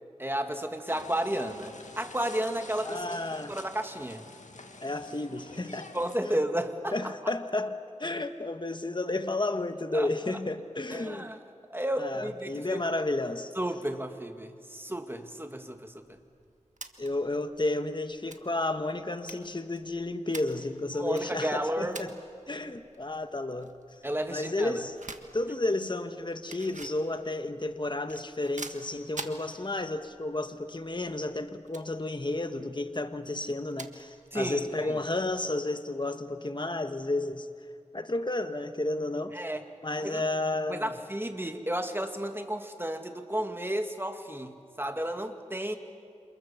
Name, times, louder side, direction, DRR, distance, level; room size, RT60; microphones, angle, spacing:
voice 1, 0.2-3.0 3.5-4.3 5.9-7.1 9.9-10.4 10.9-11.4 11.7-12.8 13.6-16.2 20.9-22.0 24.0-24.8 34.3-35.0 39.3-39.6 40.0-40.2 40.7-45.8, right 1 dB, 20° right, 6 dB, 2.2 m, -33 dB
sound 1, 0.9-6.2, left 3 dB, 80° left, 1.9 m, -48 dB
voice 2, 2.8-3.5 4.8-5.9 6.2-6.4 6.9-11.3 12.0-13.5 17.0-22.1 22.5-23.8 24.3-24.9 25.3-37.5 37.9-39.4 39.8-40.9, left 2 dB, 40° left, 8 dB, 1.3 m, -32 dB
sound 2, 16.0-35.5, right 3 dB, 80° right, 1.6 m, -49 dB
29.5 x 27.5 x 7.2 m, 2.2 s
wide cardioid pair, 50°, 12 cm